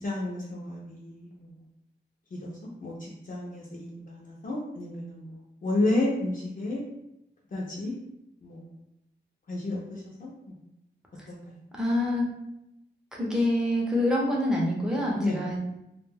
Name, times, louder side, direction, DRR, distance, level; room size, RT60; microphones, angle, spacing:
voice 1, 0.0-1.5 2.3-6.8 7.5-7.9 8.4-8.7 9.5-10.5 11.3-11.5 15.2-15.4, left 2 dB, 45° left, -5 dB, 0.5 m, -32 dB
voice 2, 11.8-12.2 13.1-15.6, left 1 dB, 5° right, -4 dB, 0.6 m, -26 dB
2.4 x 2.1 x 3.4 m, 0.86 s
wide cardioid pair, 155°, 19 cm